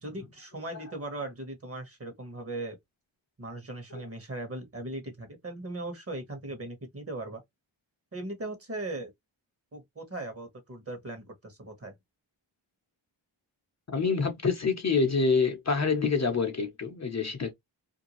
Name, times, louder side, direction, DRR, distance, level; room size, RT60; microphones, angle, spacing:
voice 1, 0.0-2.8 3.4-7.4 8.1-9.1 9.7-12.0, right 2 dB, 30° right, 1.1 m, -38 dB
voice 2, 13.9-17.5, left 4 dB, 35° left, 0.7 m, -26 dB
2.6 x 2.2 x 2.9 m
cardioid pair, 60°, 47 cm